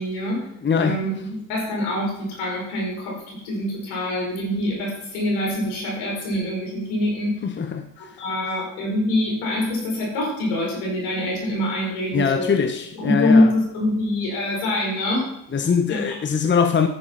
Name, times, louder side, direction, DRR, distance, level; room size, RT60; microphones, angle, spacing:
voice 1, 0.0-0.4 0.8-7.4 8.0-12.5 13.0-15.3 15.9-16.1, left 1 dB, 80° left, 4.9 m, -24 dB
voice 2, 0.6-1.0 7.4-7.9 12.1-13.5 15.5-16.9, left 6 dB, 30° left, 1.1 m, -22 dB
10.0 x 7.3 x 5.7 m
hypercardioid pair, 65°, 37 cm